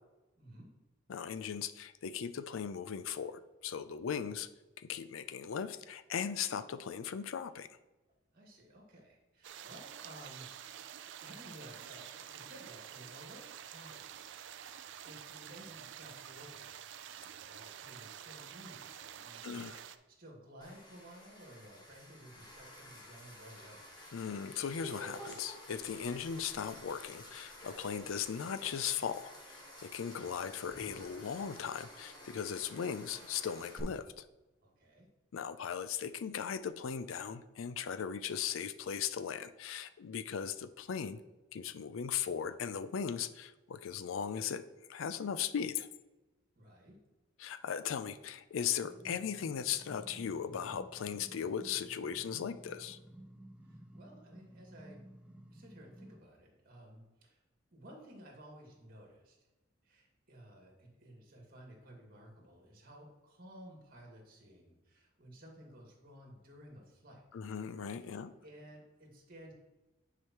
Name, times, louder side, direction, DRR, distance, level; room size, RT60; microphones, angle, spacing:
voice 1, 0.4-0.7 8.3-10.5 11.2-14.7 15.0-16.8 17.1-23.9 34.6-35.1 46.6-47.0 53.6-55.0 55.5-57.4 57.7-59.4 59.8-67.2 68.0-69.5, right 1 dB, 50° right, -1 dB, 2.0 m, -55 dB
voice 2, 1.1-4.5 4.8-7.7 19.4-19.8 24.1-34.2 35.3-41.2 41.5-45.9 47.4-53.0 67.3-68.3, left 7 dB, 85° left, 13 dB, 0.4 m, -38 dB
sound 1, 9.4-20.0, right 9 dB, 65° right, 0.4 m, -49 dB
sound 2, 20.6-33.8, equal, 20° left, 1.3 m, -52 dB
sound 3, 48.8-56.2, right 1 dB, 5° right, 0.5 m, -54 dB
9.6 x 4.9 x 3.0 m, 1.1 s
head